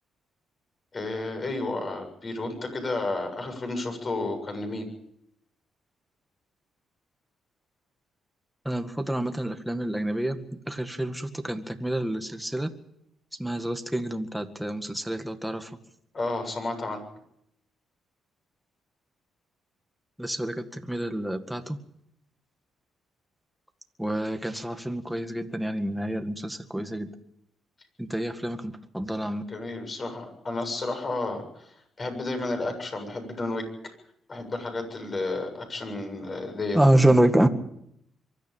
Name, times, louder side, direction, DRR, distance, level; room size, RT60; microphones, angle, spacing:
voice 1, 0.9-4.9 16.1-17.0 29.5-33.9 34.3-37.1, left 2 dB, 35° left, 5 dB, 7.5 m, -32 dB
voice 2, 8.7-10.4 10.7-12.7 13.4-15.6 20.2-21.8 24.0-27.1 28.0-29.4 36.7-37.5, right 1 dB, 5° right, 7 dB, 1.9 m, -27 dB
23.5 x 13.5 x 8.9 m, 0.76 s
cardioid pair, 90°, 0 cm